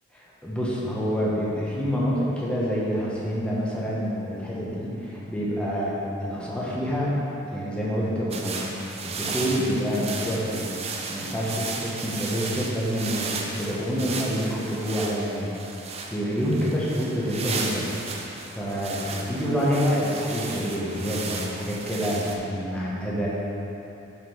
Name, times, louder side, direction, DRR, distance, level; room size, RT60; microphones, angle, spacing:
voice 1, 0.4-7.2 7.5-8.6 9.0-10.7 11.1-15.5 16.1-17.9 18.5-23.3, equal, 5° left, -7 dB, 1.2 m, -27 dB
sound 1, 8.3-22.4, right 4 dB, 30° right, 0.5 m, -35 dB
5.7 x 5.5 x 5.6 m, 3.0 s
head